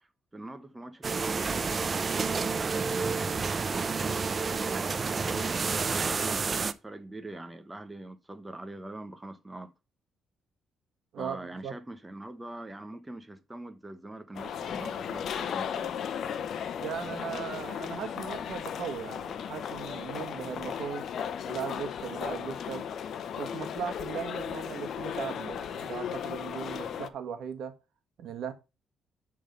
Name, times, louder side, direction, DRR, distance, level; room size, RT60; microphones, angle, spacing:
voice 1, 0.0-5.6 5.9-9.7 11.2-16.1, right 2 dB, 15° right, 1.0 m, -43 dB
sound 1, 1.0-6.7, right 4 dB, 35° right, 0.7 m, -29 dB
sound 2, 14.3-27.1, left 8 dB, 65° left, 0.8 m, -36 dB
voice 2, 16.8-21.0 21.4-22.9 23.4-27.8 28.2-28.5, right 7 dB, 70° right, 1.5 m, -38 dB
10.5 x 3.9 x 5.3 m
cardioid pair, 90°, 0 cm